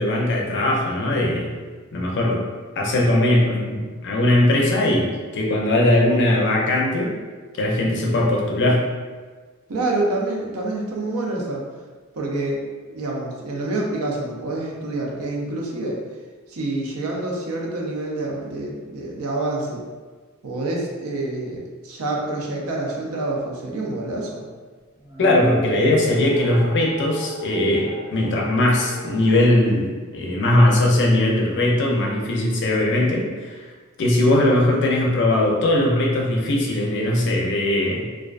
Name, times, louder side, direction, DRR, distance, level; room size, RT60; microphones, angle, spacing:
voice 1, 0.0-1.5 1.9-2.4 2.8-7.1 7.5-8.8 25.2-33.6 34.0-38.0, left 1 dB, 55° left, -1 dB, 0.4 m, -20 dB
voice 2, 9.7-11.6 12.2-16.0 16.5-19.8 20.4-24.4, right 2 dB, 70° right, -2 dB, 0.5 m, -27 dB
sound 1, 25.0-29.4, right 1 dB, 10° right, 0.8 m, -34 dB
2.3 x 2.3 x 2.3 m, 1.4 s
head